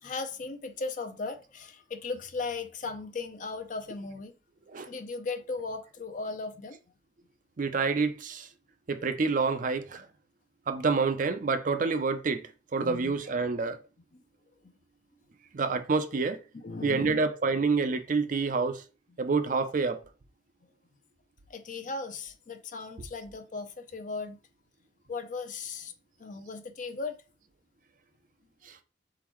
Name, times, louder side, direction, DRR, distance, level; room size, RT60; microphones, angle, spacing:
voice 1, 0.0-4.3 4.8-6.8 12.8-13.2 14.1-14.2 14.6-14.7 16.6-17.2 21.5-24.4 25.1-25.9 26.2-27.2, left 4 dB, 45° left, 0.6 m, -37 dB
voice 2, 7.6-8.5 8.9-10.1 10.7-13.8 15.5-16.4 16.8-18.8 19.2-20.0 28.6-28.8, right 4 dB, 45° right, 0.5 m, -28 dB
4.3 x 3.8 x 3.0 m
head